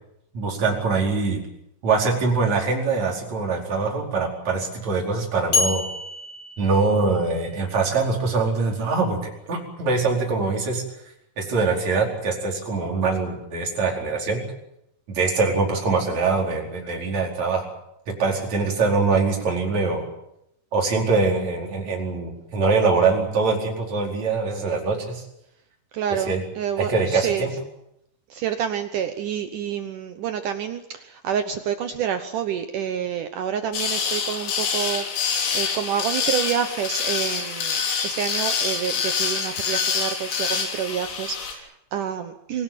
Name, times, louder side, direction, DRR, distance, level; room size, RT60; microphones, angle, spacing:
voice 1, 0.3-1.4 1.8-5.8 6.6-10.8 11.4-14.4 15.1-17.7 18.2-20.1 20.7-25.2 26.1-26.4 26.8-27.5, right 4 dB, 40° right, 0 dB, 5.6 m, -23 dB
sound 1, 5.5-7.6, left 4 dB, 35° left, 4.2 m, -27 dB
voice 2, 25.9-27.5 28.3-42.6, right 9 dB, 90° right, 8 dB, 1.8 m, -28 dB
sound 2, 33.7-41.5, left 6 dB, 75° left, 5.7 m, -26 dB
25.0 x 18.0 x 9.0 m, 0.81 s
omnidirectional pair, 5.3 m